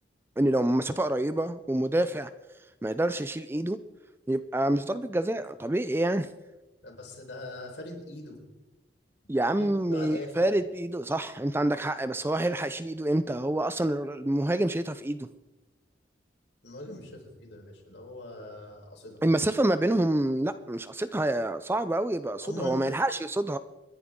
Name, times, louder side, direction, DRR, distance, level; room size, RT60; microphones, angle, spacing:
voice 1, 0.4-2.3 2.8-3.8 4.3-6.3 9.3-15.3 19.2-23.6, right 1 dB, 15° right, 12 dB, 0.4 m, -27 dB
voice 2, 6.8-8.4 9.5-10.3 16.6-19.2 22.4-22.8, left 1 dB, 75° left, 0 dB, 4.4 m, -41 dB
28.5 x 11.0 x 3.7 m, 1.1 s
head